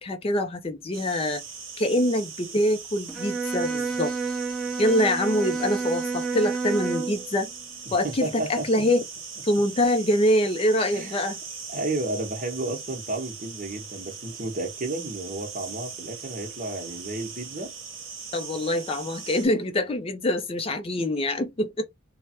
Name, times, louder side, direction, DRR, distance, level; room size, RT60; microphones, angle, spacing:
voice 1, 0.0-1.4 1.8-4.1 4.8-7.5 7.9-9.1 9.4-11.4 18.3-21.8, left 1 dB, 30° left, 0.4 m, -24 dB
sound 1, 0.9-19.5, right 6 dB, 70° right, 0.9 m, -40 dB
Bowed string instrument, 3.1-7.3, right 4 dB, ahead, 0.7 m, -29 dB
voice 2, 7.9-8.7 10.9-11.2 11.7-17.7, right 2 dB, 40° right, 0.9 m, -32 dB
3.2 x 2.1 x 2.8 m
head